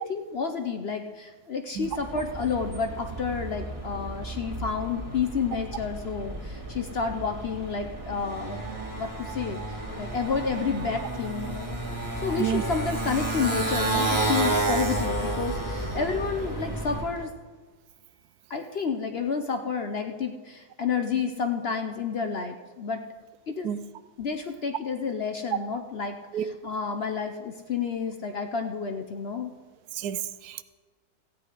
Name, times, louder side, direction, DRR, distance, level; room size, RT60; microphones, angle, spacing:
voice 1, 0.1-8.6 9.0-11.7 12.2-17.3 18.5-23.0 23.5-23.7 24.2-29.5, left 5 dB, 55° left, 0.7 m, -30 dB
Motorcycle, 1.8-17.2, right 2 dB, 10° right, 1.6 m, -31 dB
voice 2, 29.9-30.6, right 10 dB, 80° right, 1.1 m, -29 dB
15.0 x 9.3 x 5.0 m
omnidirectional pair, 1.7 m